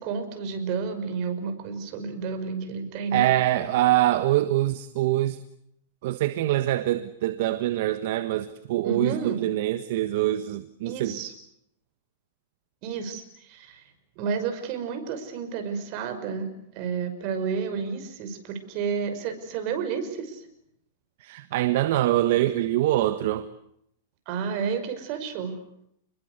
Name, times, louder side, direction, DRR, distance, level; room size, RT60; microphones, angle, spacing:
voice 1, 0.0-3.3 8.8-9.4 10.8-11.3 12.8-13.8 14.2-16.5 16.7-20.4 24.3-25.6, right 6 dB, 40° right, 5.8 m, -31 dB
voice 2, 3.1-5.4 6.0-11.2 21.2-23.5, right 14 dB, 60° right, 1.4 m, -24 dB
30.0 x 21.5 x 8.2 m
supercardioid pair, 150°, 0 cm